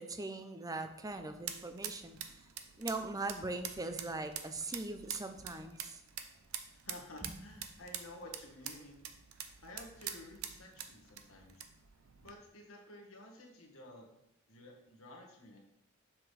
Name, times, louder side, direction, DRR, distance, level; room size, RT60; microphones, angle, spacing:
voice 1, 0.0-2.2 2.8-6.0 7.2-7.3, right 2 dB, 15° right, 8 dB, 0.5 m, -40 dB
sound 1, 0.7-12.3, right 9 dB, 85° right, 0.6 m, -47 dB
voice 2, 6.8-9.1 9.6-11.7 12.2-14.1 14.5-15.6, left 1 dB, 75° left, 0 dB, 1.5 m, -52 dB
7.2 x 6.0 x 3.3 m, 0.79 s
head